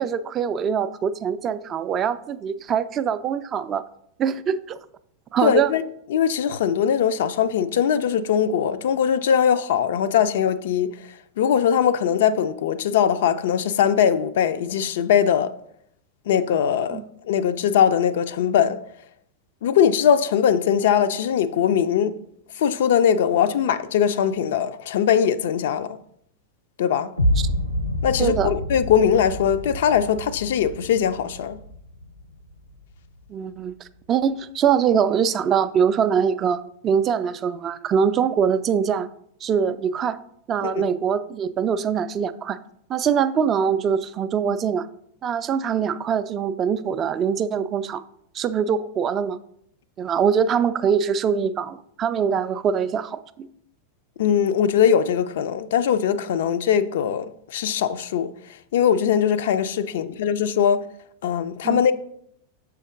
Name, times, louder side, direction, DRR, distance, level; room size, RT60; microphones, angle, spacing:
voice 1, 0.0-3.8 4.2-4.8 5.3-5.7 16.9-17.0 27.4-27.5 28.2-28.5 33.3-33.7 34.1-39.1 39.4-40.2 40.5-42.6 42.9-44.9 45.2-48.0 48.3-49.4 50.0-53.5 61.6-61.8, right 7 dB, 30° right, 0.3 m, -23 dB
voice 2, 5.4-5.8 6.1-10.9 11.4-15.5 16.3-17.0 17.3-18.8 19.6-22.2 22.6-26.0 26.8-27.1 28.0-31.6 40.6-40.8 54.2-58.3 58.7-60.9 61.2-61.9, left 8 dB, 55° left, 0.3 m, -21 dB
sound 1, 27.2-33.2, left 1 dB, 85° right, 0.6 m, -28 dB
6.7 x 4.6 x 3.5 m
figure-of-eight pair, 90°, 0 cm